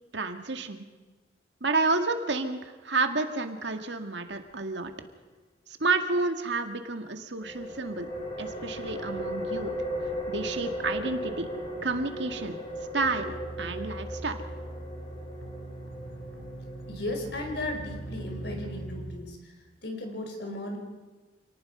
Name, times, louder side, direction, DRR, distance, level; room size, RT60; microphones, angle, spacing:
voice 1, 0.1-0.9 1.6-4.9 5.7-8.1 8.4-9.7 10.3-11.5 11.8-12.6 12.9-14.4, right 3 dB, 70° right, 6 dB, 1.9 m, -30 dB
sound 1, 7.4-18.8, equal, 30° left, 3.8 m, -37 dB
sound 2, 13.0-19.2, right 1 dB, 85° left, 3.2 m, -41 dB
voice 2, 16.9-19.4 19.8-20.8, left 1 dB, 60° left, 3 dB, 5.0 m, -35 dB
28.0 x 19.0 x 5.5 m, 1.3 s
head